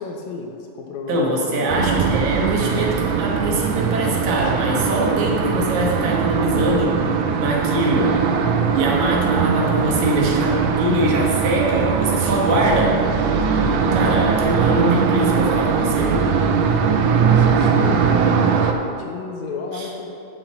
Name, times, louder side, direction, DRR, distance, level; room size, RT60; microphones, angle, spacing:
voice 1, 0.0-1.3 1.5-1.9 17.2-20.1, left 4 dB, 75° left, 1 dB, 2.0 m, -33 dB
voice 2, 1.1-7.0 7.4-8.2 8.7-13.0 13.9-16.3 19.7-19.9, right 1 dB, 70° right, -2 dB, 2.6 m, -22 dB
sound 1, 1.7-18.7, right 6 dB, 90° right, 2.2 m, -20 dB
6.8 x 5.9 x 7.3 m, 2.5 s
omnidirectional pair, 3.5 m